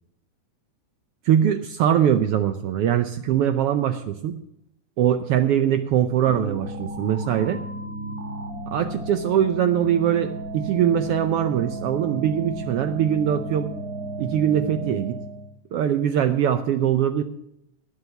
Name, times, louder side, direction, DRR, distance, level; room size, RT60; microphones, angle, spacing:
voice 1, 1.2-4.4 5.0-7.6 8.7-13.7 14.2-15.2 15.7-17.2, right 10 dB, 80° right, 10 dB, 1.3 m, -22 dB
sound 1, 6.3-15.5, right 1 dB, 40° right, 1.3 m, -33 dB
19.0 x 6.8 x 5.7 m, 0.79 s
omnidirectional pair, 3.4 m